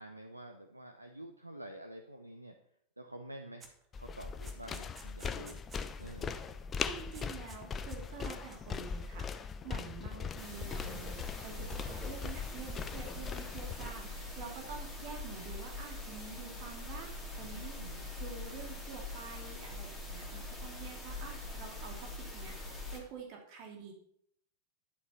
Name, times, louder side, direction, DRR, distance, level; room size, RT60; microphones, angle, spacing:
voice 1, 0.0-2.5 3.0-3.7 3.9-5.6 6.0-6.4 10.1-10.7 17.4-18.0, right 1 dB, 85° right, 6 dB, 0.9 m, -49 dB
sound 1, 3.6-3.8 4.1-6.2 6.4-6.6 6.8-7.6 7.9-9.0, right 4 dB, 20° right, 2.1 m, -55 dB
sound 2, 3.9-13.9, left 5 dB, 20° left, 0.8 m, -40 dB
voice 2, 6.9-17.1 17.3-17.8 18.2-23.9, right 6 dB, 45° right, 1 dB, 3.0 m, -48 dB
sound 3, 10.4-23.0, left 2 dB, ahead, 4.2 m, -43 dB
11.5 x 7.9 x 5.8 m, 0.69 s
figure-of-eight pair, 90°, 0 cm